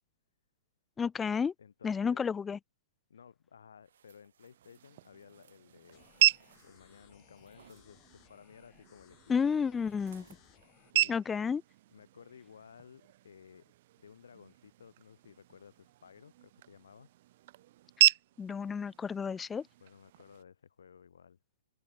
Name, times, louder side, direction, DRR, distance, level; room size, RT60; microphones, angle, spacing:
voice 1, 1.0-1.5 1.8-2.6 9.3-10.2 11.1-11.6 18.4-19.6, left 6 dB, 10° left, 0.3 m, -31 dB
voice 2, 1.6-2.2 3.1-6.1 6.6-10.0 10.8-11.2 11.9-17.1 19.8-21.4, left 7 dB, 85° left, 5.5 m, -56 dB
sound 1, 3.8-7.9 9.8-10.5 11.0-11.1, right 9 dB, 70° right, 4.0 m, -63 dB
sound 2, 4.4-20.4, right 15 dB, 45° right, 0.7 m, -35 dB
sound 3, 5.9-10.9, left 20 dB, 25° left, 3.4 m, -63 dB
open air
hypercardioid pair, 155°, 0 cm